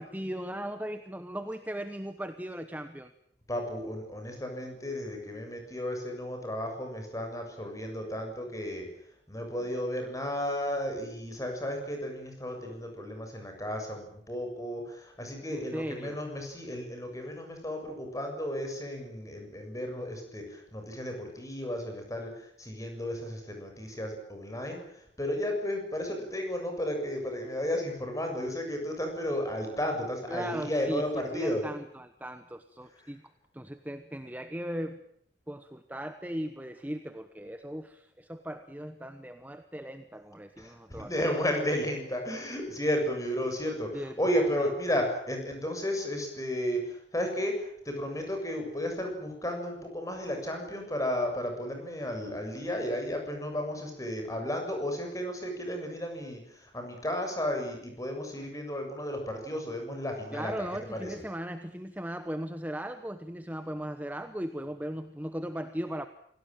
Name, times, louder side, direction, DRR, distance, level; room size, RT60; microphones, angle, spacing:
voice 1, 0.0-3.1 15.5-16.2 30.3-31.0 31.3-33.2 33.5-35.0 35.5-41.2 43.9-44.2 60.3-66.1, equal, 10° right, 9 dB, 1.0 m, -38 dB
voice 2, 3.5-8.9 9.3-31.7 40.6-61.1, equal, 20° left, 4 dB, 7.1 m, -33 dB
27.0 x 18.0 x 9.1 m, 0.68 s
head